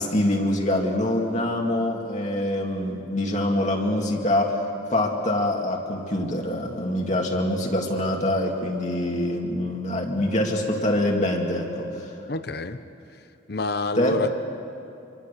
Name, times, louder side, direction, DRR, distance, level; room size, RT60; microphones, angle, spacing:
voice 1, 0.0-4.6 4.9-12.1 13.9-14.2, left 1 dB, 40° left, 0 dB, 2.2 m, -25 dB
voice 2, 12.3-12.8 13.5-14.3, left 2 dB, 55° left, 11 dB, 0.9 m, -27 dB
26.0 x 24.0 x 6.8 m, 2.7 s
head